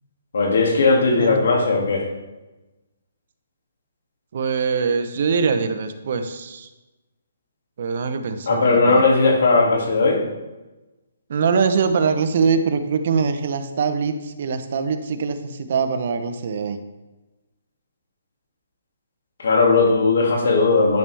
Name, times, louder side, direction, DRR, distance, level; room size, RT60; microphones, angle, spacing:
voice 1, 0.3-2.0 8.5-10.2 19.4-21.0, left 3 dB, 70° left, 0 dB, 2.5 m, -17 dB
voice 2, 4.3-6.7 7.8-9.1 11.3-16.8, right 5 dB, 50° right, 8 dB, 0.9 m, -23 dB
10.5 x 6.9 x 3.5 m, 1.1 s
hypercardioid pair, 160°, 0 cm